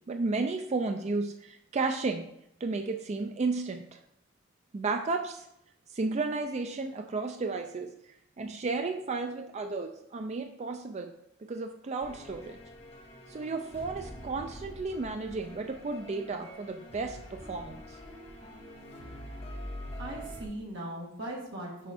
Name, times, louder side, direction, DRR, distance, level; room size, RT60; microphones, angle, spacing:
voice 1, 0.1-2.3 2.6-4.0 4.7-5.5 5.9-7.9 8.4-11.1 11.5-12.6 13.3-18.0, right 3 dB, 35° right, 6 dB, 0.3 m, -33 dB
sound 1, 12.0-20.4, equal, 30° left, 1.0 m, -45 dB
voice 2, 19.2-21.9, right 1 dB, 60° right, -2 dB, 1.8 m, -40 dB
6.1 x 5.2 x 4.3 m, 0.78 s
head